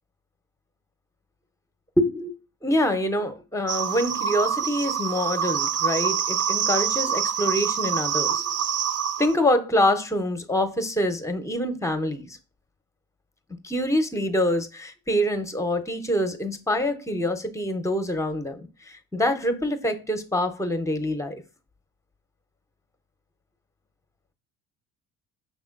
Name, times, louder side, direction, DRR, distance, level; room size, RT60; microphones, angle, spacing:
voice 1, 2.0-2.3 2.6-8.6 9.2-12.4 13.6-21.4, left 1 dB, 5° left, 0.7 m, -25 dB
sound 1, 3.7-9.3, right 8 dB, 35° right, 0.5 m, -26 dB
5.9 x 3.5 x 2.4 m
hypercardioid pair, 65°, 44 cm